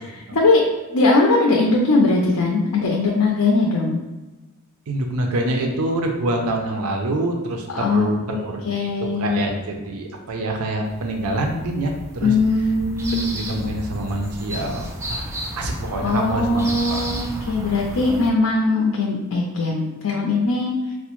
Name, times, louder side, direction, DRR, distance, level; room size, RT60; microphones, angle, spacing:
voice 1, 0.3-0.6 0.9-4.0 7.7-9.6 12.2-13.4 15.8-20.9, left 3 dB, 90° left, -1 dB, 0.5 m, -20 dB
voice 2, 4.9-12.3 13.3-17.3, right 1 dB, 80° right, 2 dB, 0.5 m, -26 dB
sound 1, 10.9-18.3, equal, 10° right, 0.3 m, -32 dB
4.5 x 2.0 x 3.0 m, 1.1 s
head